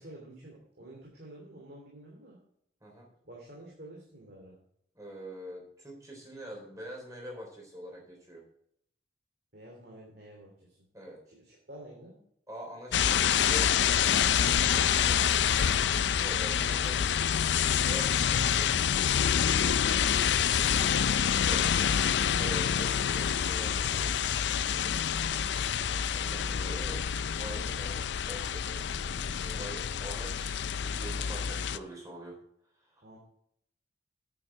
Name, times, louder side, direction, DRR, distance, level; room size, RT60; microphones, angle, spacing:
voice 1, 0.0-2.4 3.2-4.6 9.5-10.9 11.3-12.2 19.6-21.3 24.8-25.5 27.5-27.9 29.5-30.1 33.0-33.2, right 1 dB, 55° right, -3 dB, 2.9 m, -50 dB
voice 2, 5.0-8.4 10.9-11.2 12.5-13.9 14.2-17.1 17.8-19.0 21.2-24.3 26.1-32.4 32.9-33.0, equal, 20° right, -1 dB, 3.6 m, -45 dB
sound 1, 12.9-31.8, left 8 dB, 70° left, 0.4 m, -27 dB
9.3 x 8.7 x 4.5 m, 0.70 s
head